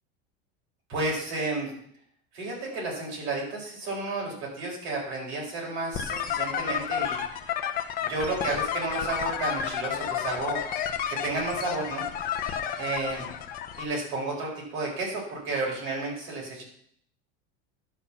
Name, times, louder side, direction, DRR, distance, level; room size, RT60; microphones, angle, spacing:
voice 1, 0.9-1.7 2.3-7.2 8.0-10.6 11.1-12.1 12.8-13.2 13.8-16.6, right 2 dB, 55° right, -3 dB, 4.6 m, -32 dB
sound 1, 5.9-13.8, left 9 dB, 25° left, 0.7 m, -31 dB
11.5 x 4.4 x 7.0 m, 0.64 s
cardioid pair, 175°, 33 cm